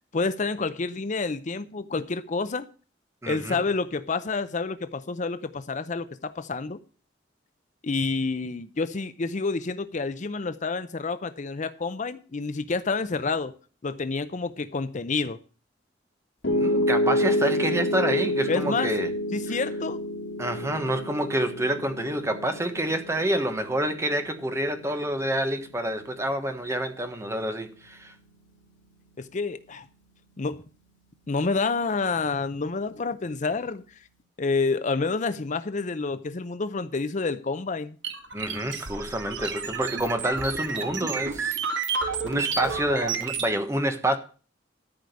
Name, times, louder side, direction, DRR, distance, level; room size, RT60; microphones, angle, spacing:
voice 1, 0.1-2.7 3.3-6.8 7.8-13.5 13.8-15.4 18.5-18.9 19.3-20.0 29.2-29.9 30.4-30.6 31.3-34.0 34.4-38.0, left 4 dB, 40° left, 0.6 m, -28 dB
voice 2, 3.2-3.6 16.5-19.1 19.5-19.6 20.4-28.1 38.3-41.6 41.9-44.2, right 1 dB, 15° right, 1.3 m, -28 dB
Piano, 16.4-28.6, left 1 dB, 75° left, 3.2 m, -30 dB
sound 1, 38.0-43.5, right 5 dB, 70° right, 1.5 m, -31 dB
13.0 x 5.0 x 8.2 m
head